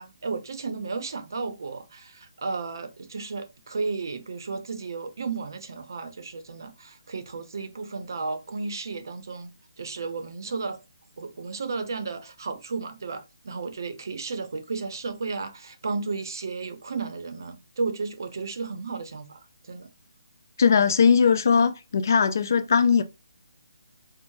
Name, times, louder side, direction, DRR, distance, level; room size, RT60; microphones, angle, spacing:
voice 1, 0.0-9.5 9.8-10.8 11.2-19.9, right 4 dB, 50° right, 0.6 m, -33 dB
voice 2, 20.6-23.0, left 6 dB, 45° left, 0.4 m, -20 dB
4.6 x 2.0 x 2.6 m
hypercardioid pair, 175°, 2 cm